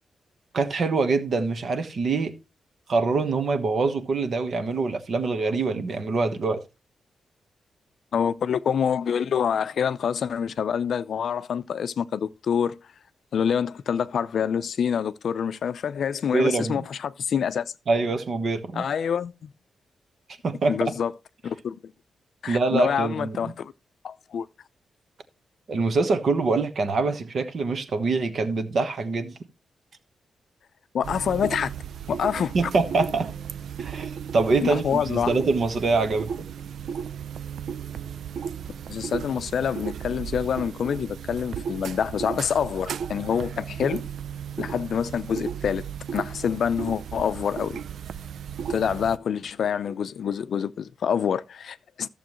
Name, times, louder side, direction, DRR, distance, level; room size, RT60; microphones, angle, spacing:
voice 1, 0.5-2.3 2.9-6.6 16.3-16.8 17.9-18.8 20.4-20.9 22.5-23.4 25.7-29.3 32.5-33.3 33.8-36.5, right 3 dB, 50° right, 1.3 m, -24 dB
voice 2, 8.1-12.8 13.3-17.7 18.7-19.5 20.7-21.1 21.4-21.8 22.4-23.7 24.0-24.5 30.9-31.7 32.1-32.5 34.6-35.4 38.9-44.1 44.6-47.8 48.7-52.1, left 7 dB, 60° left, 0.5 m, -26 dB
sound 1, 31.0-49.2, right 7 dB, 70° right, 0.4 m, -35 dB
14.0 x 7.1 x 3.1 m
wide cardioid pair, 165°, 0 cm